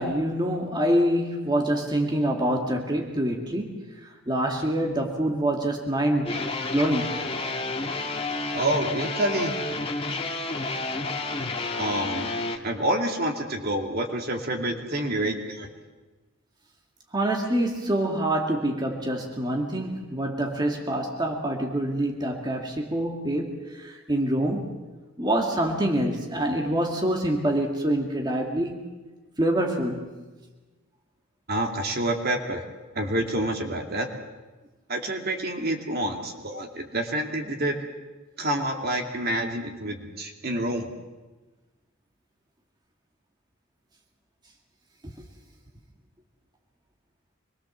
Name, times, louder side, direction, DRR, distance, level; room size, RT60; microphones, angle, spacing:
voice 1, 0.0-3.8 4.3-6.4 6.7-7.1 17.1-24.8 25.2-28.8 29.4-30.1, right 1 dB, 20° right, 1 dB, 2.2 m, -26 dB
sound 1, 6.3-12.6, left 3 dB, 25° left, 1.8 m, -30 dB
voice 2, 8.5-9.6 11.8-12.3 12.6-15.7 31.5-32.6 32.9-34.1 34.9-37.8 38.4-40.9, right 1 dB, 45° right, 3 dB, 2.5 m, -28 dB
26.0 x 22.0 x 7.4 m, 1.2 s
head